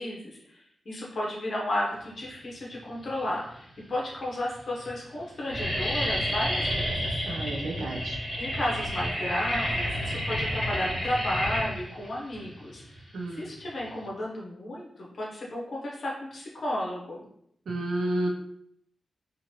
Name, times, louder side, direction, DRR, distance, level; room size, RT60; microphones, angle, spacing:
voice 1, 0.0-7.2 8.4-12.8 13.3-17.3, left 1 dB, 50° left, -4 dB, 0.7 m, -33 dB
sound 1, 2.9-3.5 4.1-4.2 4.5-4.9 5.1-14.1, equal, 20° left, 1.1 m, -30 dB
voice 2, 7.3-8.2 13.1-13.4 17.7-18.3, right 2 dB, 75° right, 0 dB, 0.4 m, -31 dB
2.9 x 2.5 x 2.7 m, 0.74 s
wide cardioid pair, 135°, 0 cm